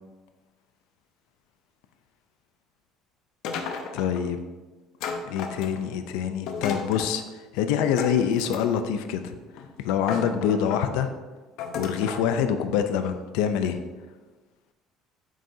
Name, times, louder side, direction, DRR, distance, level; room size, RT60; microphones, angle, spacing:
sound 1, 3.4-4.2 5.0-6.0 6.5-7.1 8.0-8.9 9.6-9.7 10.0-10.9 11.6-12.3, left 5 dB, 60° left, 0.8 m, -33 dB
voice 1, 3.9-4.4 5.3-9.3 9.8-11.1 11.7-13.8, left 8 dB, 85° left, 8 dB, 0.5 m, -25 dB
8.8 x 6.4 x 2.7 m, 1.3 s
cardioid pair, 175°, 0 cm